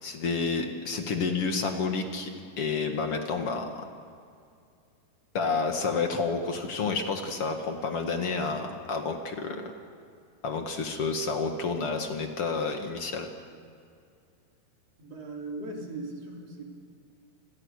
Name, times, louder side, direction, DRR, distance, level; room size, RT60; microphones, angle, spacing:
voice 1, 0.0-2.3 2.6-3.9 5.3-9.7 10.4-13.3, left 4 dB, 50° left, 4 dB, 1.9 m, -30 dB
voice 2, 15.0-16.6, right 2 dB, 40° right, 0 dB, 4.0 m, -38 dB
29.5 x 22.5 x 6.6 m, 2.4 s
omnidirectional pair, 4.8 m